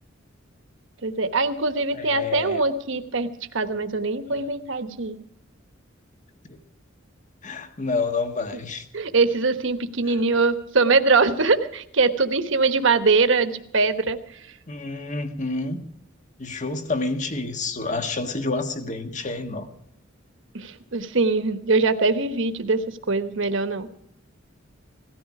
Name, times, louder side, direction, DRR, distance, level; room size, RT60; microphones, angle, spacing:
voice 1, 1.0-3.3 3.5-5.2 8.9-14.2 20.5-23.9, right 3 dB, 65° right, 9 dB, 1.2 m, -22 dB
voice 2, 1.9-2.6 4.3-4.5 6.5-6.6 7.4-8.9 10.1-10.2 14.7-15.8 16.4-19.7, left 3 dB, 40° left, 6 dB, 1.6 m, -29 dB
17.0 x 14.0 x 4.8 m, 0.76 s
head